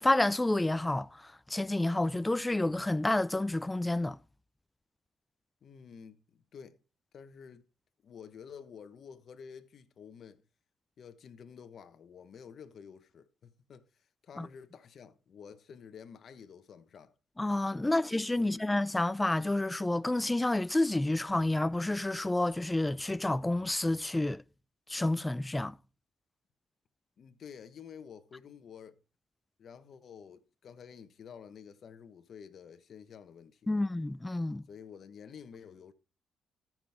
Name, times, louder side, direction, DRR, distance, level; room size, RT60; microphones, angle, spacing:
voice 1, 0.0-4.2 14.4-14.5 17.4-24.4 24.9-25.8 33.7-34.7, left 2 dB, 15° left, 0.5 m, -29 dB
voice 2, 5.6-6.8 7.1-7.6 8.0-10.4 11.0-13.8 14.2-17.1 17.8-18.6 27.2-29.0 29.6-33.8 34.7-35.9, left 7 dB, 55° left, 1.1 m, -50 dB
13.5 x 6.0 x 3.5 m
cardioid pair, 90°, 0 cm